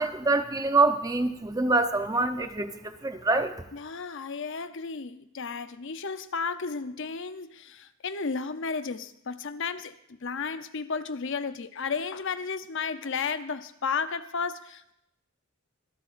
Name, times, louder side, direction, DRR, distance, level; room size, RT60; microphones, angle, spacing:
voice 1, 0.0-3.5, right 3 dB, 15° right, 8 dB, 0.8 m, -25 dB
voice 2, 3.7-14.9, left 5 dB, 65° left, 11 dB, 0.7 m, -33 dB
25.0 x 12.0 x 2.6 m, 0.77 s
head